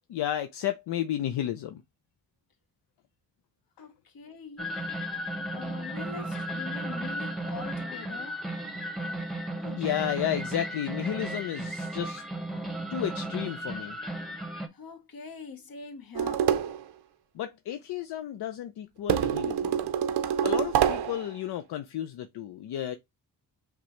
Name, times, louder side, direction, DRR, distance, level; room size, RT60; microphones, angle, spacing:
voice 1, 0.1-1.8 9.6-12.2 12.9-13.9 17.3-19.7 20.4-23.0, left 11 dB, 80° left, 0.5 m, -32 dB
voice 2, 3.8-4.8 5.5-8.4 14.7-16.5, left 5 dB, 60° left, 1.1 m, -43 dB
sound 1, 4.6-14.7, right 1 dB, ahead, 0.8 m, -35 dB
sound 2, 16.1-16.8 19.1-21.2, right 9 dB, 75° right, 0.6 m, -26 dB
5.9 x 2.2 x 2.9 m
cardioid pair, 65°, 40 cm